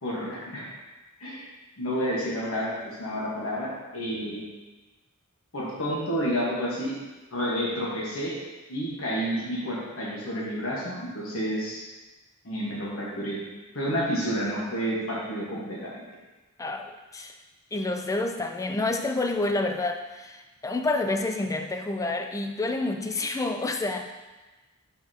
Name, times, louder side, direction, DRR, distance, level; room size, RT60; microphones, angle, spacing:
voice 1, 0.0-0.7 1.2-1.4 1.8-4.4 5.5-6.9 7.3-8.3 8.7-11.8 12.4-13.4 13.7-15.9, equal, 70° left, -5 dB, 1.4 m, -30 dB
voice 2, 16.6-17.3 17.7-24.0, left 2 dB, 15° left, 5 dB, 0.4 m, -28 dB
5.8 x 5.7 x 2.9 m, 1.2 s
head